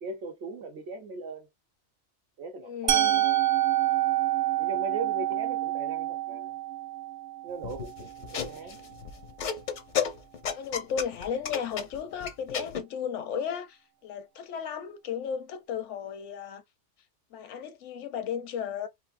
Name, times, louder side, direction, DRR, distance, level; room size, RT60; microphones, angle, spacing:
voice 1, 0.0-1.5 2.4-3.4 4.6-6.5 7.4-8.8, right 3 dB, 65° right, 1.0 m, -39 dB
voice 2, 2.6-3.2 10.5-16.6 17.3-18.9, left 7 dB, 80° left, 0.9 m, -34 dB
Musical instrument, 2.9-8.8, right 14 dB, 85° right, 0.9 m, -28 dB
sound 1, 7.6-12.8, left 7 dB, 55° left, 0.5 m, -33 dB
3.3 x 2.4 x 2.4 m
omnidirectional pair, 1.2 m